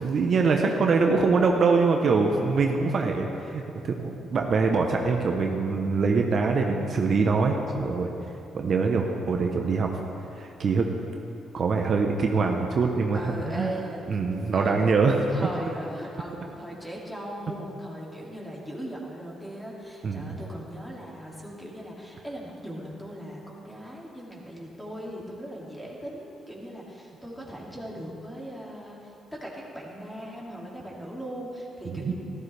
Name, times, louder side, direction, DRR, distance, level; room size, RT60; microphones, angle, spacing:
voice 1, 0.0-8.1 8.5-9.9 10.4-10.9 11.5-13.7 14.1-15.2 20.0-20.4 31.9-32.1, right 4 dB, 50° right, 2 dB, 0.9 m, -24 dB
voice 2, 13.1-14.0 14.5-14.8 15.3-29.0 29.3-32.1, equal, 5° left, -4 dB, 2.6 m, -38 dB
14.0 x 13.5 x 3.4 m, 2.8 s
cardioid pair, 90°, 0 cm